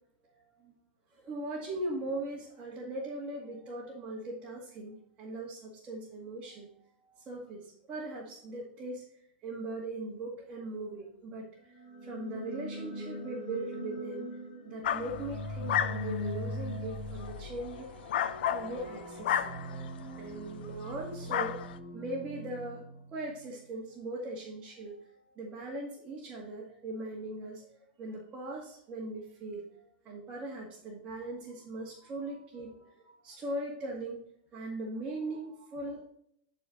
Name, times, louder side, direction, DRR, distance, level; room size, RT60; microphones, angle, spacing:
voice 1, 0.3-0.7 1.1-9.0 9.4-14.3 14.6-17.9 18.5-19.5 20.2-22.8 23.1-34.2 34.5-36.0, right 2 dB, 25° right, -4 dB, 2.1 m, -40 dB
sound 1, 11.7-23.6, equal, 5° right, 1.6 m, -41 dB
sound 2, 14.8-20.3 20.8-21.0 21.3-21.8, left 9 dB, 70° left, 0.6 m, -34 dB
11.5 x 4.3 x 4.0 m, 0.68 s
supercardioid pair, 145°, 6 cm